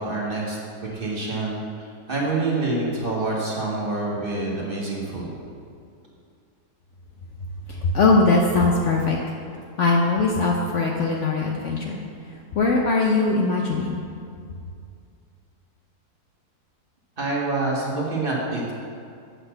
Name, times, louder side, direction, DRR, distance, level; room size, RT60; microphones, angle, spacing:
voice 1, 0.0-5.4 17.2-18.7, right 2 dB, 35° right, -4 dB, 1.3 m, -27 dB
voice 2, 7.7-9.2 9.8-12.0 12.5-14.0, left 3 dB, 60° left, 0 dB, 0.8 m, -20 dB
7.8 x 4.2 x 6.5 m, 2.3 s
omnidirectional pair, 1.7 m